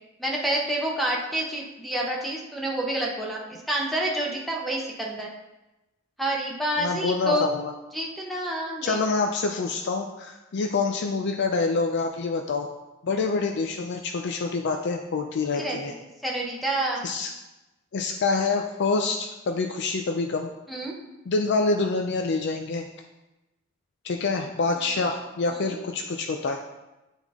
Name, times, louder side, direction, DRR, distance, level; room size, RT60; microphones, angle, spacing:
voice 1, 0.2-3.4 3.7-5.3 6.2-7.6 7.9-9.0 15.6-17.0 20.7-20.9 24.8-25.0 25.5-25.8, right 1 dB, ahead, -2 dB, 0.9 m, -28 dB
voice 2, 6.8-7.7 8.8-12.7 13.0-15.9 17.0-17.3 17.9-20.5 21.3-22.9 24.0-26.6, left 3 dB, 60° left, 3 dB, 0.4 m, -26 dB
9.2 x 3.6 x 3.6 m, 1.0 s
head